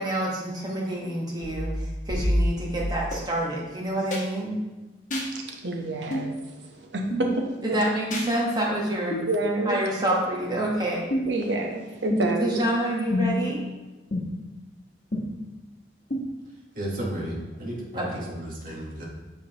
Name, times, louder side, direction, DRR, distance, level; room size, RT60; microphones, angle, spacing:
voice 1, 0.0-1.7 2.1-4.6 7.6-9.2 9.7-11.1 12.4-13.6 17.9-18.2, right 1 dB, 20° right, -3 dB, 1.2 m, -27 dB
sound 1, 1.4-3.1 4.1-4.2 5.1-5.3 6.1-6.3 7.1-7.3 8.1-8.3 9.1-9.3 10.1-10.2 11.1-11.4 12.1-12.5 13.1-13.5 14.1-14.2 15.1-15.2 16.1-16.2, equal, 45° left, 1.3 m, -27 dB
voice 2, 5.3-7.6 9.3-9.8 11.3-12.6, right 2 dB, 80° right, 1 dB, 0.9 m, -28 dB
voice 3, 16.8-19.0, right 1 dB, 50° right, -3 dB, 1.1 m, -33 dB
7.0 x 4.6 x 2.9 m, 1.1 s
head